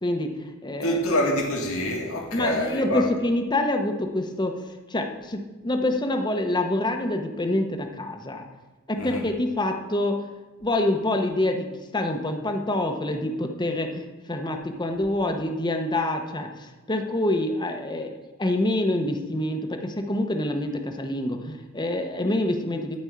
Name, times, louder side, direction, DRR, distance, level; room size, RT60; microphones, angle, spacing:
voice 1, 0.0-1.0 2.3-4.6 4.9-8.5 8.9-10.3 10.6-23.0, left 1 dB, 20° left, 4 dB, 1.0 m, -26 dB
voice 2, 0.8-3.1 9.0-9.3, left 1 dB, 75° left, -2 dB, 2.2 m, -26 dB
12.5 x 5.4 x 8.6 m, 1.2 s
head